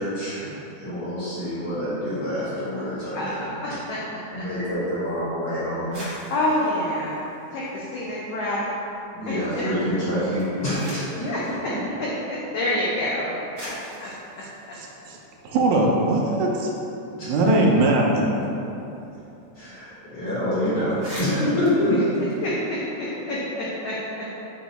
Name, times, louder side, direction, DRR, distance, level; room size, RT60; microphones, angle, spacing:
voice 1, 0.0-3.8 4.3-6.0 9.1-11.8 17.2-17.6 19.6-22.2, equal, 55° left, -11 dB, 1.8 m, -26 dB
voice 2, 3.1-4.0 4.3-4.4 6.3-8.7 9.3-9.7 11.2-13.4 13.7-14.1 14.7-14.8 22.4-24.3, left 1 dB, 80° left, -6 dB, 1.4 m, -28 dB
sound 1, 5.7-8.3 8.7-9.4 10.2-11.3 12.3-12.4 13.1-13.2 13.5-15.9 16.2-16.3 16.6-19.2 19.4-19.6 19.9-20.1 20.5-20.6 20.8-23.0, equal, 55° right, 1.3 m, -42 dB
voice 3, 14.7-15.2 15.4-16.7 17.1-18.4, right 2 dB, 80° right, -1 dB, 1.9 m, -21 dB
5.8 x 2.3 x 4.1 m, 2.9 s
omnidirectional pair, 3.4 m